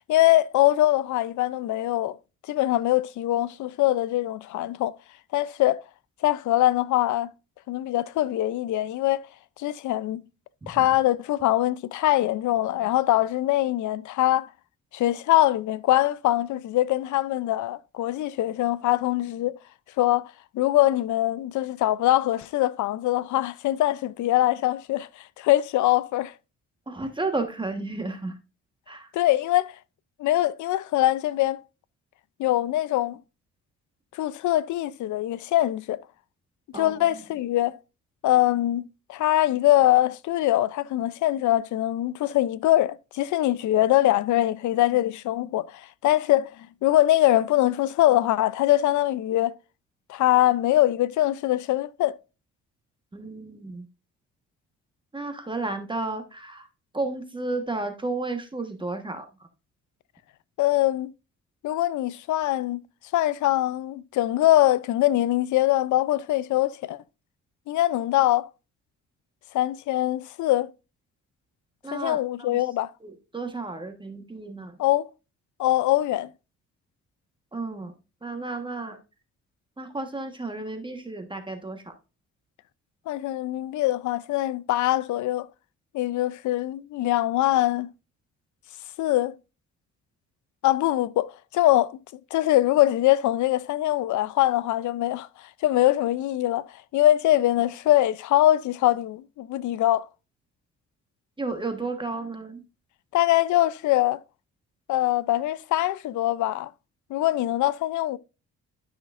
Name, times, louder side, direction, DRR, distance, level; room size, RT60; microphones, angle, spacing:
voice 1, 0.1-2.2 2.5-4.9 5.3-5.8 6.2-7.3 7.7-9.2 9.6-10.2 10.7-14.5 14.9-19.5 20.0-20.3 20.5-25.1 25.4-26.3 29.1-29.7 30.2-31.6 32.4-33.2 34.1-36.0 36.7-37.8 38.2-38.8 39.1-46.5 46.8-49.5 50.1-52.1 60.6-61.1 61.6-62.8 63.1-67.0 67.7-68.5 69.5-70.7 71.9-72.9 74.8-75.1 75.6-76.3 83.1-85.5 85.9-87.9 89.0-89.3 90.6-92.0 92.3-95.3 95.6-96.6 96.9-100.0 103.1-104.2 104.9-106.7 107.1-108.2, left 14 dB, 75° left, 0.5 m, -23 dB
voice 2, 26.9-28.3 28.9-29.1 36.7-37.1 53.1-53.9 55.1-56.7 56.9-59.2 71.8-72.5 73.0-74.7 77.5-77.9 78.2-79.0 79.8-81.9 101.4-102.6, right 3 dB, 15° right, 1.3 m, -32 dB
12.0 x 5.8 x 2.5 m
cardioid pair, 90°, 30 cm